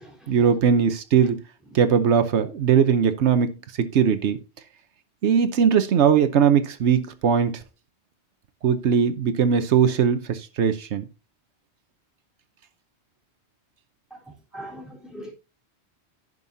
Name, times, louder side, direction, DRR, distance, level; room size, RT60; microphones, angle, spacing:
voice 1, 0.3-1.4 1.7-3.5 3.8-4.4 5.2-7.6 8.6-11.1, right 7 dB, 80° right, 1.1 m, -20 dB
voice 2, 14.5-15.3, equal, ahead, 3.6 m, -39 dB
15.5 x 5.4 x 2.7 m
omnidirectional pair, 1.1 m